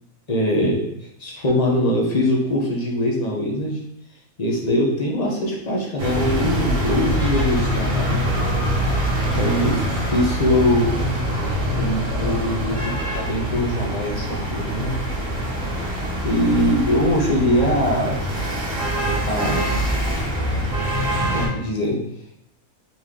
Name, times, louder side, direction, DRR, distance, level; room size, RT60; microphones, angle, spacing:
voice 1, 0.3-3.8 4.4-11.0 11.8-14.9 16.2-18.2 19.2-19.7 21.3-22.0, left 1 dB, 35° left, -2 dB, 0.7 m, -22 dB
sound 1, 6.0-21.5, equal, 45° right, 1.4 m, -24 dB
4.1 x 3.1 x 3.7 m, 0.81 s
omnidirectional pair, 1.5 m